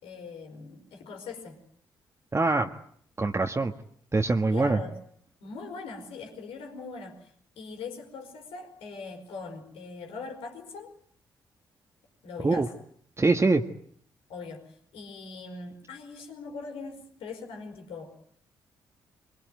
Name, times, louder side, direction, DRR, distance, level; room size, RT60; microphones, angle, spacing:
voice 1, 0.0-1.6 4.5-5.0 5.4-10.9 12.2-12.7 14.3-18.1, left 4 dB, 70° left, 4 dB, 5.0 m, -41 dB
voice 2, 2.3-2.7 3.2-3.7 4.1-4.8 12.4-12.7 13.2-13.6, right 3 dB, 25° right, 4 dB, 1.8 m, -23 dB
24.5 x 23.5 x 9.3 m, 0.64 s
hypercardioid pair, 40°, 10 cm